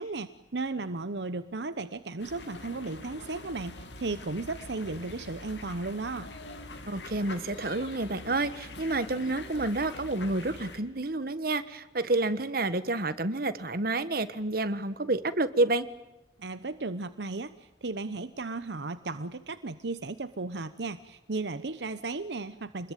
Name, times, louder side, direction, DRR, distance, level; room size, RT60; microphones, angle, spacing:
voice 1, 0.0-6.3 16.4-22.9, right 3 dB, 80° right, 12 dB, 0.9 m, -35 dB
sound 1, 2.2-10.8, left 2 dB, 85° left, 2.8 m, -44 dB
voice 2, 6.9-15.9, right 2 dB, 55° right, 13 dB, 1.4 m, -29 dB
28.0 x 21.0 x 9.1 m, 0.92 s
head